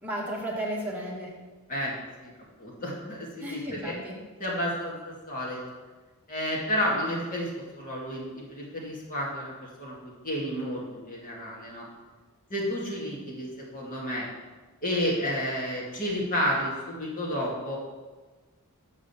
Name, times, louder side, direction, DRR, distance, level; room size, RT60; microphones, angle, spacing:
voice 1, 0.0-1.4 3.4-4.2, equal, 10° right, -5 dB, 1.8 m, -34 dB
voice 2, 1.7-2.3 2.6-3.9 4.4-5.6 6.3-11.9 12.5-14.2 14.8-17.8, equal, 40° left, -4 dB, 2.2 m, -31 dB
6.8 x 5.1 x 6.9 m, 1.3 s
head